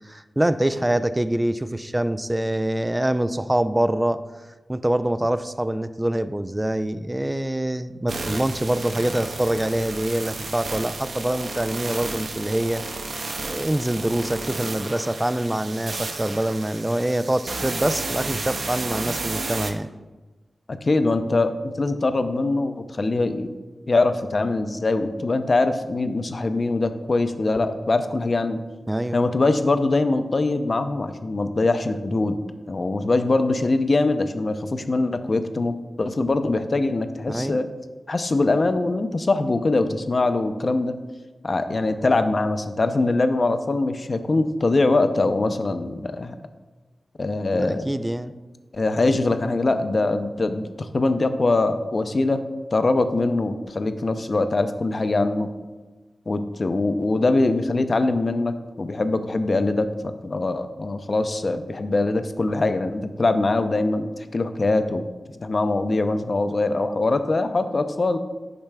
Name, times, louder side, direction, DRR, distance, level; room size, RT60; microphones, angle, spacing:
voice 1, 0.1-4.2 4.7-12.8 13.4-19.9 28.9-29.2 37.3-37.6 47.5-48.3, right 1 dB, 15° right, 12 dB, 0.3 m, -25 dB
sound 1, 8.1-19.7, right 3 dB, 70° right, 0.6 m, -32 dB
voice 2, 20.7-23.5 23.9-28.6 29.1-32.4 32.7-37.7 38.1-40.9 41.4-46.3 47.2-47.9 48.7-52.4 52.7-55.5 56.3-65.0 65.4-68.2, left 2 dB, 50° left, 9 dB, 0.5 m, -22 dB
8.6 x 5.9 x 2.2 m, 1.2 s
cardioid pair, 55°, 0 cm